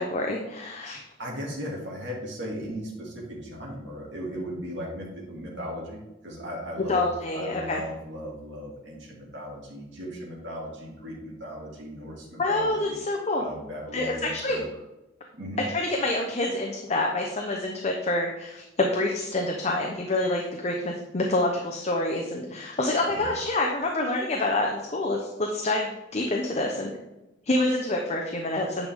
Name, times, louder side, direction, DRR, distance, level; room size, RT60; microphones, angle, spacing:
voice 1, 0.0-1.0 6.9-7.8 12.4-13.5 13.9-14.6 15.7-26.9 27.4-28.9, left 2 dB, 40° left, 1 dB, 0.8 m, -27 dB
voice 2, 1.2-13.0 13.3-14.6 15.3-15.6 23.1-23.3, equal, 80° right, -3 dB, 2.2 m, -37 dB
9.4 x 5.3 x 3.6 m, 0.97 s
head